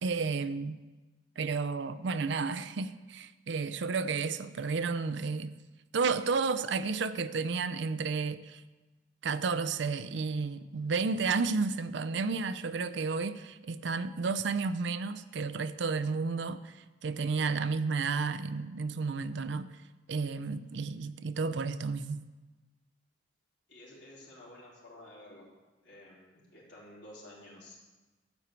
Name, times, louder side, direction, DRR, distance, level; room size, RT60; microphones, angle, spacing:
voice 1, 0.0-0.8 1.4-5.5 5.9-8.6 9.2-16.7 17.0-19.7 20.1-22.2, right 4 dB, 70° right, 0.5 m, -32 dB
voice 2, 23.7-25.4 25.8-27.7, left 1 dB, 70° left, 3.8 m, -52 dB
12.5 x 4.5 x 8.2 m
head